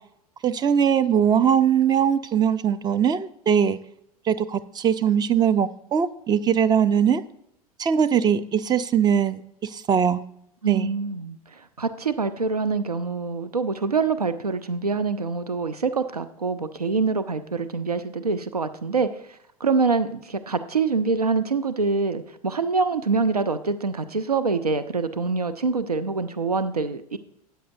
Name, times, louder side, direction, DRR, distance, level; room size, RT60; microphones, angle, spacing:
voice 1, 0.4-3.8 4.3-7.2 7.8-10.2 10.7-10.9, right 8 dB, 20° right, 16 dB, 0.5 m, -21 dB
voice 2, 10.6-19.2 19.6-27.2, right 4 dB, 90° right, 12 dB, 0.5 m, -25 dB
13.5 x 8.9 x 2.6 m, 0.73 s
figure-of-eight pair, 85°, 19 cm